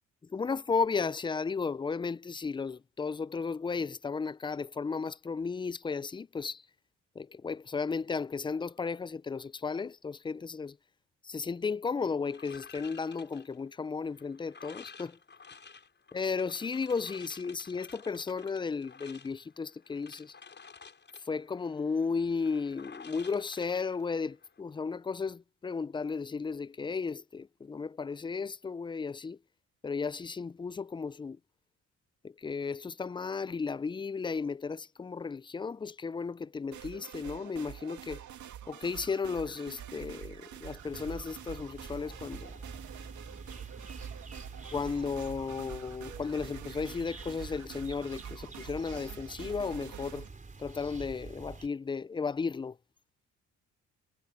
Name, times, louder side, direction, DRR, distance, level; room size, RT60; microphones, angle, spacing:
voice 1, 0.3-6.6 7.2-10.8 11.2-15.2 16.1-20.4 21.3-29.4 29.8-31.4 32.2-38.2 38.7-42.5 44.7-50.3 50.6-52.8, left 5 dB, 15° left, 0.4 m, -34 dB
sound 1, 12.3-24.6, left 5 dB, 40° left, 7.3 m, -52 dB
sound 2, 36.7-50.3, right 10 dB, 70° right, 2.7 m, -47 dB
sound 3, 40.8-51.7, right 3 dB, 25° right, 4.0 m, -47 dB
cardioid pair, 90°, 30 cm